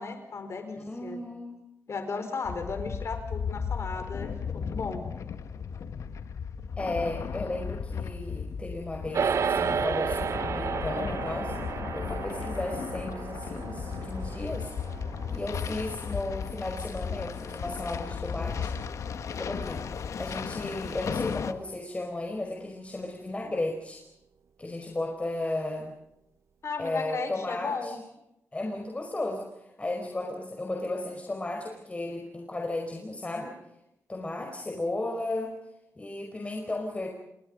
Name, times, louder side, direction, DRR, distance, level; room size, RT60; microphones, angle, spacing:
voice 1, 0.0-1.2 1.9-5.1 26.6-28.0, left 4 dB, 60° left, 7 dB, 4.5 m, -35 dB
voice 2, 0.7-1.6 6.8-11.5 11.9-14.7 15.3-18.7 19.3-19.8 20.2-24.0 24.6-25.9 26.8-28.0 28.5-29.5 29.8-33.6 34.1-35.6 36.0-37.1, left 2 dB, 25° left, 1 dB, 4.9 m, -34 dB
sound 1, 2.4-21.5, left 6 dB, 75° left, 1.6 m, -35 dB
sound 2, 9.1-18.7, right 6 dB, 70° right, 0.8 m, -33 dB
29.5 x 25.0 x 5.4 m, 0.85 s
cardioid pair, 95°, 5 cm